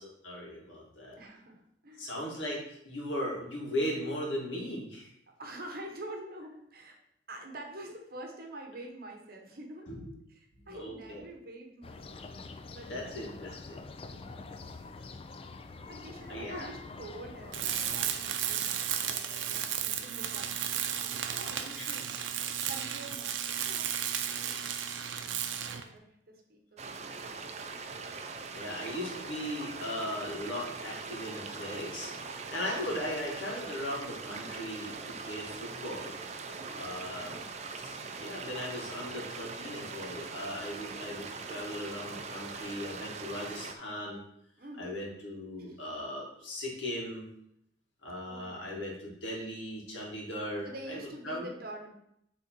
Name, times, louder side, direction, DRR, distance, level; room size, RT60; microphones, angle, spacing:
voice 1, 0.2-1.2 2.0-5.1 9.9-10.1 10.6-11.2 12.9-13.8 16.3-16.7 21.7-22.0 28.5-36.1 36.8-37.3 37.8-44.2 44.8-47.3 48.0-51.0 51.2-51.5, left 1 dB, 85° left, -3 dB, 2.1 m, -38 dB
voice 2, 1.2-2.2 5.4-7.0 7.3-9.9 10.3-10.4 10.7-12.5 12.7-13.2 14.1-14.5 15.8-22.4 22.7-23.9 24.3-24.9 25.5-27.4 36.4-37.5 44.6-45.0 45.6-45.8 48.2-48.8 50.6-51.9, right 1 dB, 50° right, 2 dB, 1.0 m, -47 dB
sound 1, 11.8-18.5, left 3 dB, 30° left, 0.4 m, -46 dB
Tools, 17.5-25.9, right 9 dB, 90° right, 0.6 m, -34 dB
sound 2, 26.8-43.7, right 4 dB, 35° right, 0.5 m, -42 dB
7.1 x 3.7 x 4.5 m, 0.75 s
head